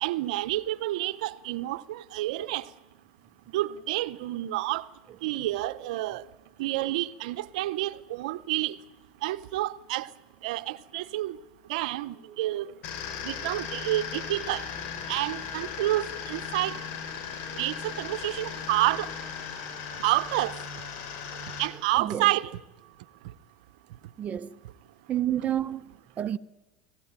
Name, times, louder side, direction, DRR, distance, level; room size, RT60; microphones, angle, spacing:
voice 1, 0.0-2.6 3.5-4.9 5.2-6.2 6.6-8.8 9.2-10.1 10.4-11.4 11.7-12.6 13.2-14.6 15.1-16.8 17.5-19.1 20.0-20.5 21.6-22.5, right 16 dB, 80° right, 0.8 m, -29 dB
sound 1, 12.8-21.7, left 7 dB, 70° left, 4.8 m, -37 dB
voice 2, 24.2-24.5 25.1-25.9 26.2-26.4, right 11 dB, 40° right, 0.7 m, -29 dB
24.5 x 16.5 x 8.9 m
supercardioid pair, 90°, 4 cm